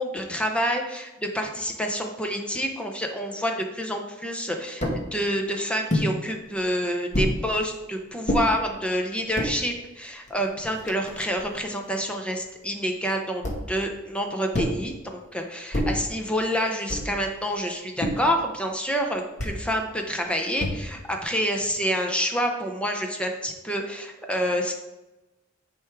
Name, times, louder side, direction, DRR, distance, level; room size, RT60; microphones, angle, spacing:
voice 1, 0.0-24.7, equal, 5° left, 3 dB, 0.7 m, -28 dB
sound 1, 4.8-5.0 5.9-6.1 7.1-7.4 8.3-8.4 9.2-9.5 10.3-10.4 10.6-11.6 13.4-13.8 14.5-14.9 15.7-16.1 16.9-17.2 18.0-18.3 19.4-19.6 20.6-21.0, equal, 35° left, 1.1 m, -27 dB
9.7 x 3.6 x 4.6 m, 1.0 s
head